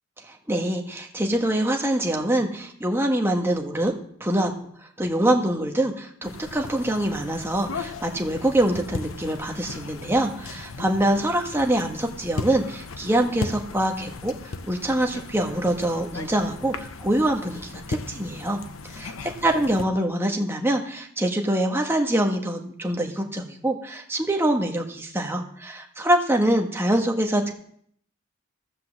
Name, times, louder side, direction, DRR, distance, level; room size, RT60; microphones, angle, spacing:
voice 1, 0.5-3.9 4.2-4.7 5.0-14.3 14.7-18.6 18.9-19.1 19.4-27.5, right 1 dB, 10° right, 2 dB, 1.5 m, -24 dB
sound 1, 6.2-19.8, left 3 dB, 90° left, 0.8 m, -37 dB
14.5 x 5.8 x 7.3 m, 0.64 s
head